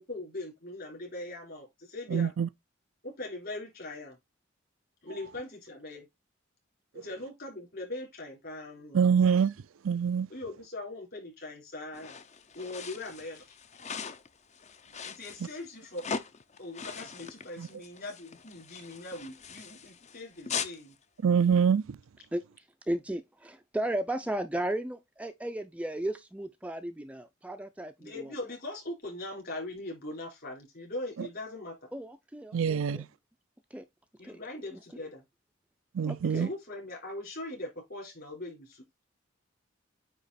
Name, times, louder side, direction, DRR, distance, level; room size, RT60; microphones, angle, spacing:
voice 1, 0.0-2.3 3.0-4.2 5.0-6.1 6.9-9.1 10.3-12.2 12.5-13.5 15.0-16.1 16.6-20.9 28.0-31.9 34.2-35.2 36.2-38.8, left 2 dB, 50° left, 4.1 m, -41 dB
voice 2, 2.1-2.5 8.9-9.6 9.8-10.3 17.6-17.7 21.2-22.0 31.2-31.3 32.5-33.1 35.9-36.5, right 7 dB, 85° right, 0.4 m, -25 dB
sound 1, 11.9-20.8, left 6 dB, 35° left, 0.6 m, -41 dB
voice 3, 22.9-28.3 31.9-33.0 33.7-33.8 34.2-34.4 36.0-36.5, right 1 dB, 5° right, 0.4 m, -35 dB
9.1 x 3.0 x 4.1 m
head